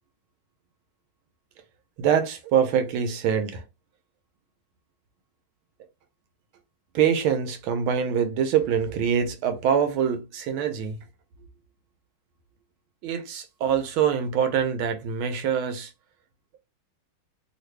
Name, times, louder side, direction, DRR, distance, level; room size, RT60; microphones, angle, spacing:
voice 1, 2.0-3.6 6.9-11.0 13.0-15.9, right 8 dB, 80° right, 1.4 m, -24 dB
3.3 x 2.4 x 3.1 m
omnidirectional pair, 2.3 m